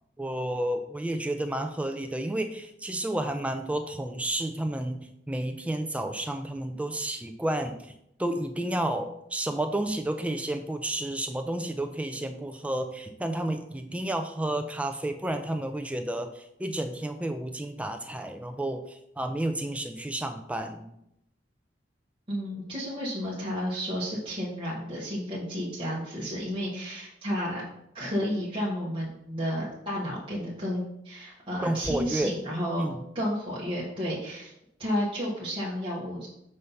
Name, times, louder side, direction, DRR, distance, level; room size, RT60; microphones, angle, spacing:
voice 1, 0.2-7.9 8.2-20.8 31.6-32.4 32.8-33.0, right 1 dB, 5° right, 7 dB, 0.3 m, -31 dB
voice 2, 22.3-27.6 27.9-32.9 33.1-34.5 34.8-36.3, equal, 30° right, -7 dB, 1.2 m, -32 dB
5.4 x 3.2 x 5.6 m, 0.79 s
head